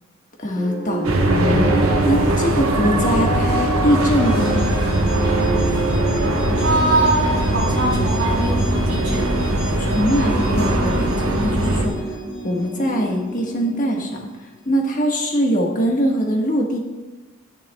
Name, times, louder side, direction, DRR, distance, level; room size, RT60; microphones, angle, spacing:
voice 1, 0.4-4.8 9.8-12.2 12.4-16.8, equal, 40° left, 0 dB, 1.3 m, -22 dB
sound 1, 0.6-14.3, right 2 dB, 5° right, 1.7 m, -28 dB
sound 2, 1.0-11.9, right 1 dB, 80° right, 1.0 m, -21 dB
sound 3, 2.0-12.9, left 1 dB, 60° left, 2.7 m, -30 dB
voice 2, 6.6-9.2, right 2 dB, 60° right, -5 dB, 2.3 m, -22 dB
11.5 x 9.7 x 2.2 m, 1.2 s
head